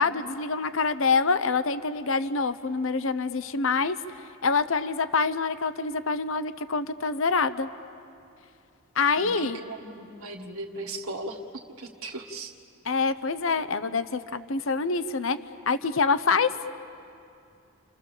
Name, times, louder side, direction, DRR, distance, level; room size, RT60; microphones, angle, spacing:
voice 1, 0.0-4.0 4.4-7.7 9.0-9.6 12.8-15.4 15.7-16.5, left 4 dB, 60° left, 12 dB, 0.8 m, -26 dB
voice 2, 9.1-11.4 11.8-12.5, right 2 dB, 75° right, 0 dB, 1.6 m, -38 dB
29.5 x 27.5 x 7.3 m, 2.6 s
head